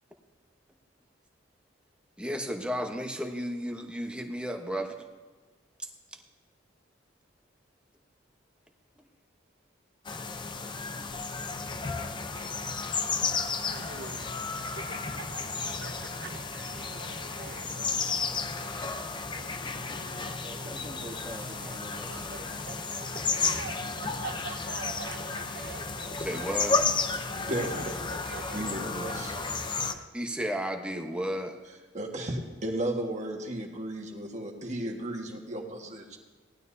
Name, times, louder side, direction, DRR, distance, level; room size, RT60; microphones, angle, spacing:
voice 1, 2.2-5.1 5.8-6.2 26.2-26.8 30.1-31.6, equal, 5° right, 3 dB, 1.0 m, -33 dB
sound 1, 10.0-29.9, left 4 dB, 25° left, 0.6 m, -33 dB
sound 2, 11.5-30.1, right 4 dB, 55° right, 0.7 m, -45 dB
voice 2, 20.4-22.5 22.9-23.0 23.3-24.4 28.8-29.5, equal, 20° right, 0 dB, 1.6 m, -46 dB
voice 3, 27.3-28.1 28.5-29.3 31.9-36.2, right 1 dB, 40° right, 1 dB, 1.6 m, -34 dB
18.5 x 12.0 x 2.7 m, 1.3 s
head